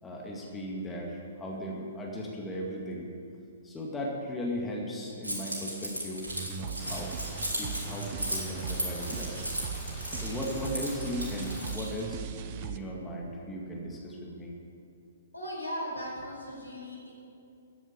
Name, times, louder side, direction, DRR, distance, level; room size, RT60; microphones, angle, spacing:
voice 1, 0.0-3.1 3.6-7.1 7.6-9.4 10.2-14.5, equal, 10° left, -2 dB, 2.1 m, -37 dB
Keys jangling, 5.2-12.0, right 1 dB, 75° right, 4.0 m, -36 dB
sound 1, 6.3-12.8, right 9 dB, 35° right, 0.7 m, -39 dB
Thunder / Rain, 6.8-11.8, left 5 dB, 30° left, 1.5 m, -45 dB
voice 2, 15.3-17.1, equal, 85° left, -2 dB, 4.6 m, -37 dB
14.0 x 9.1 x 8.6 m, 2.5 s
figure-of-eight pair, 120°, 0 cm